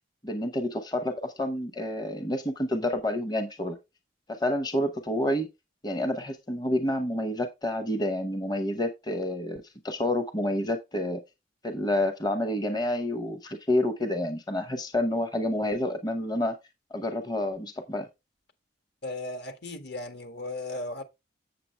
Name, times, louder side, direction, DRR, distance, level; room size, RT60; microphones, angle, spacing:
voice 1, 0.2-3.8 4.3-5.5 5.8-11.2 11.6-16.6 16.9-18.1, left 1 dB, 20° left, 0.8 m, -29 dB
voice 2, 19.0-21.0, left 2 dB, 60° left, 1.6 m, -36 dB
7.6 x 7.6 x 3.3 m
head